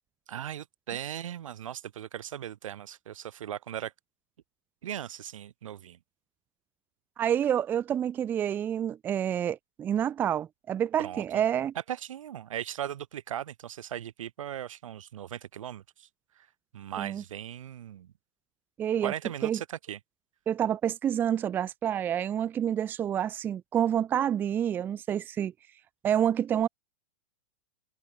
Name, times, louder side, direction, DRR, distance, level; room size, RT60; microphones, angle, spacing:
voice 1, 0.3-3.9 4.8-6.0 11.0-11.4 11.9-16.1 16.7-18.1 19.0-20.0, right 10 dB, 80° right, 3.3 m, -38 dB
voice 2, 7.2-11.7 17.0-17.2 18.8-19.1 19.4-19.6 20.5-25.5 26.0-26.7, right 9 dB, 10° right, 0.8 m, -28 dB
supercardioid pair, 180°, 17 cm